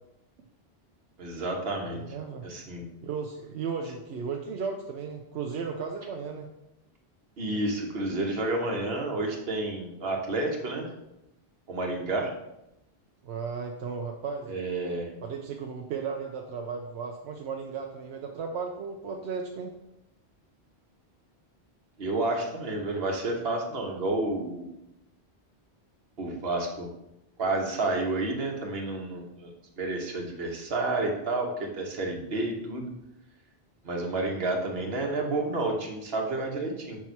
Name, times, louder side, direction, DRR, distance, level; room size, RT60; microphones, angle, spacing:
voice 1, 1.2-2.0 2.4-2.8 7.4-10.9 11.7-12.3 14.5-15.1 22.0-24.7 26.2-26.9 27.4-32.9 33.8-37.0, right 2 dB, 65° right, 1 dB, 1.3 m, -30 dB
voice 2, 1.8-2.5 3.0-6.5 13.2-14.6 15.2-19.7, right 5 dB, 85° right, 2 dB, 0.9 m, -35 dB
5.9 x 4.2 x 4.6 m, 0.86 s
omnidirectional pair, 1.1 m